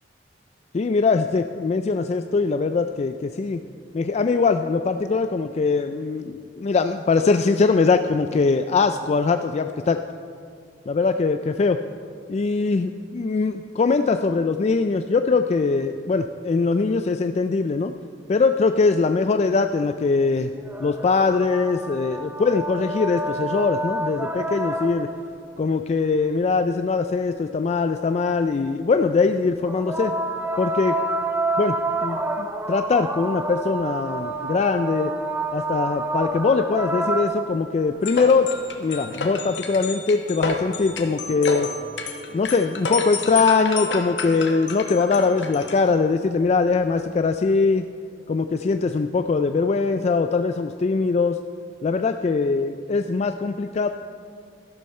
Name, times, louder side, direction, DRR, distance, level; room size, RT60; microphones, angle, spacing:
voice 1, 0.7-3.6 3.9-10.0 10.9-11.8 12.3-17.9 18.3-20.5 20.8-25.1 25.6-30.1 30.6-31.0 31.6-31.7 32.0-35.1 35.5-38.5 38.8-41.7 42.3-47.9 48.3-51.4 51.8-53.9, left 4 dB, 40° left, 8 dB, 0.3 m, -22 dB
sound 1, 20.6-25.3 29.7-37.9 39.2-39.3, right 2 dB, 10° right, 0.5 m, -28 dB
sound 2, 38.0-45.9, left 3 dB, 85° left, 1.3 m, -31 dB
13.0 x 12.0 x 4.3 m, 2.2 s
head